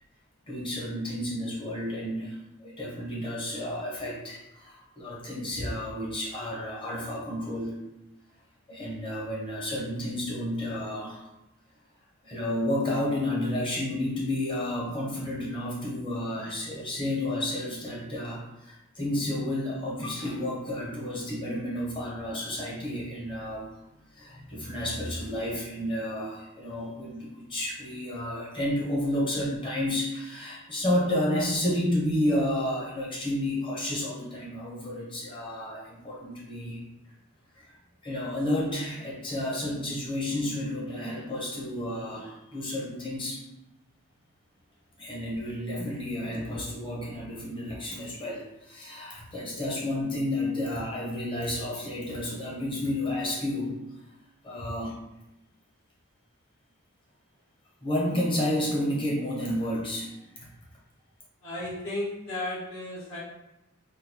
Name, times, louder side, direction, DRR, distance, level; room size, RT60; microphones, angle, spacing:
voice 1, 0.5-7.8 8.7-11.3 12.2-23.7 24.1-36.8 37.6-37.7 38.0-43.4 45.0-53.8 54.4-54.9 57.8-60.5, left 1 dB, 25° left, -4 dB, 0.8 m, -31 dB
voice 2, 61.4-63.2, left 1 dB, 70° left, -8 dB, 1.4 m, -34 dB
3.8 x 2.2 x 2.9 m, 0.92 s
head